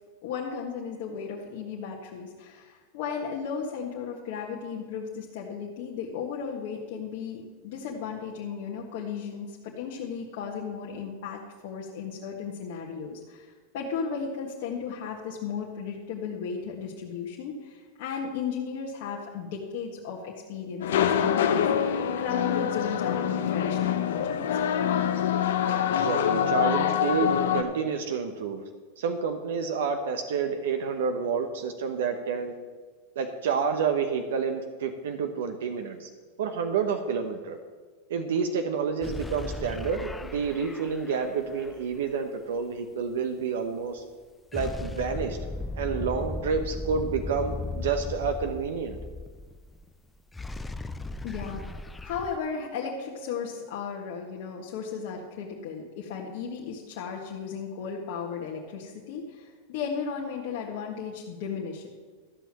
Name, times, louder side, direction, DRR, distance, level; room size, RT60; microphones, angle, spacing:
voice 1, 0.2-13.5 13.7-24.6 51.2-51.6 52.0-61.9, left 6 dB, 65° left, -3 dB, 1.6 m, -35 dB
sound 1, 20.8-27.6, left 9 dB, 85° left, 0.9 m, -25 dB
voice 2, 25.9-28.6 29.0-32.5 33.2-36.1 36.4-37.6 38.1-44.0 44.5-45.4 45.8-49.0, right 6 dB, 80° right, 6 dB, 0.9 m, -29 dB
sound 2, 39.0-42.0 44.5-49.9 50.1-52.4, left 2 dB, 10° left, 0.5 m, -37 dB
13.0 x 5.8 x 7.6 m, 1.4 s
supercardioid pair, 125°, 0 cm